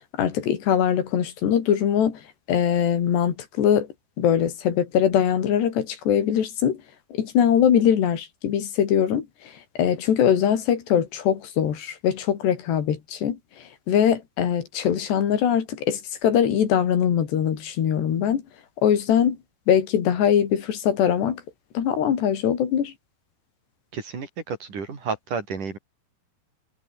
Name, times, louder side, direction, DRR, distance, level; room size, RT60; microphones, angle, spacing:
voice 1, 0.2-2.2 2.5-3.9 4.2-6.8 7.2-9.3 9.8-13.4 13.9-18.4 18.8-19.4 19.7-21.4 21.8-22.9, left 9 dB, 85° left, 5.0 m, -22 dB
voice 2, 23.9-25.8, right 5 dB, 50° right, 5.7 m, -31 dB
omnidirectional pair, 4.7 m